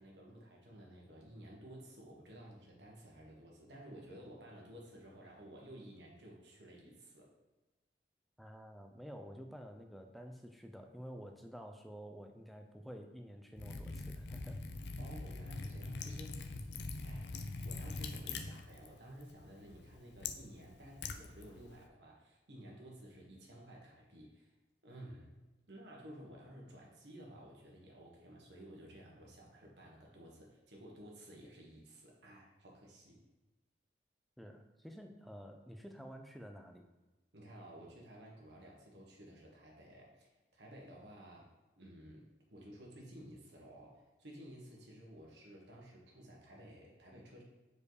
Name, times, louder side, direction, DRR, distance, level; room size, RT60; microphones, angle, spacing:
voice 1, 0.0-7.3 15.0-16.6 17.0-17.4 17.6-24.5 24.8-25.4 25.7-33.2 37.3-47.4, right 1 dB, 75° right, -2 dB, 1.4 m, -54 dB
voice 2, 8.4-14.6 34.4-36.9, equal, ahead, 4 dB, 0.5 m, -50 dB
Liquid, 13.6-21.8, left 3 dB, 75° left, 0.5 m, -44 dB
4.9 x 4.7 x 4.8 m, 1.1 s
head